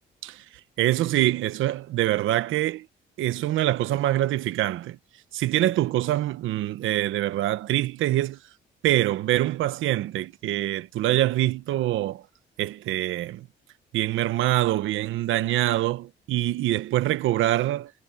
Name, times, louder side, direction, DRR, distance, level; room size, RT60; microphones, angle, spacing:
voice 1, 0.8-2.9 3.2-5.0 5.3-8.4 8.8-12.2 12.6-13.5 13.9-17.9, right 14 dB, 85° right, 0.9 m, -24 dB
cardioid pair, 90°, 20 cm